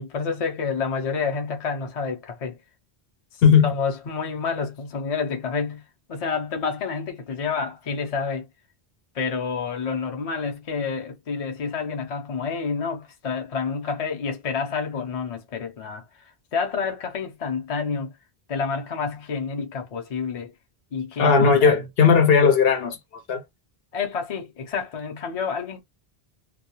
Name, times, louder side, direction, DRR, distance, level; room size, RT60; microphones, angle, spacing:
voice 1, 0.0-2.6 3.6-5.8 6.1-8.4 9.1-16.0 16.5-18.1 18.5-20.5 20.9-21.8 23.9-25.8, left 5 dB, 45° left, 0.6 m, -28 dB
voice 2, 3.4-3.7 21.2-23.0 23.3-23.4, left 6 dB, 70° left, 0.9 m, -16 dB
2.2 x 2.2 x 2.9 m
omnidirectional pair, 1.0 m